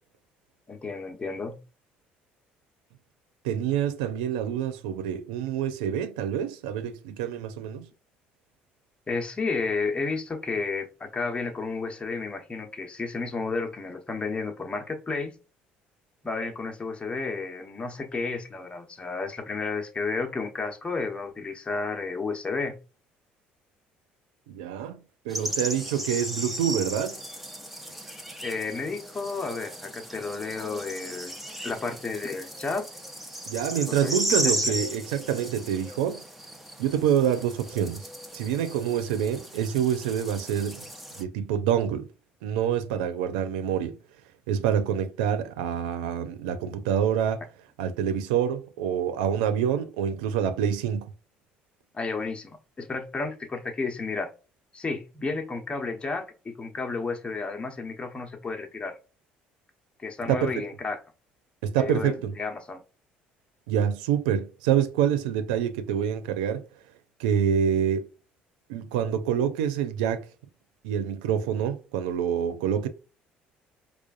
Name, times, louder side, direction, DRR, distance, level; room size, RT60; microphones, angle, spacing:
voice 1, 0.7-1.6 9.1-15.4 16.2-22.8 28.4-31.4 31.6-32.9 33.9-34.6 51.9-54.3 54.7-59.0 60.0-61.0 61.8-62.8, left 4 dB, 25° left, 0.9 m, -32 dB
voice 2, 3.4-7.9 24.5-25.0 25.3-27.2 33.5-36.2 36.8-40.8 41.2-42.1 42.4-44.0 44.5-47.4 47.8-51.1 60.3-60.5 61.6-62.3 63.7-66.6 67.2-68.1 68.7-70.3 70.8-72.9, right 9 dB, 85° right, 0.5 m, -26 dB
sound 1, 25.3-41.2, equal, 5° right, 0.7 m, -35 dB
4.8 x 2.4 x 2.4 m
hypercardioid pair, 65°, 4 cm